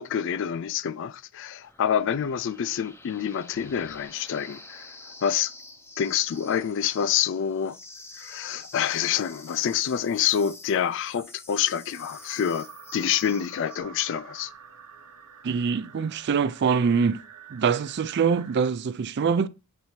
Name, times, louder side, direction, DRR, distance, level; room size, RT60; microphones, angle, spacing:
voice 1, 0.0-5.5 6.0-7.8 8.2-14.5, left 8 dB, 55° left, 0.3 m, -27 dB
sound 1, 1.6-13.8, left 2 dB, 10° left, 0.6 m, -48 dB
sound 2, 11.9-18.7, right 7 dB, 80° right, 0.9 m, -48 dB
voice 2, 15.4-17.2 17.5-19.5, right 6 dB, 50° right, 0.4 m, -24 dB
7.9 x 2.8 x 4.3 m
head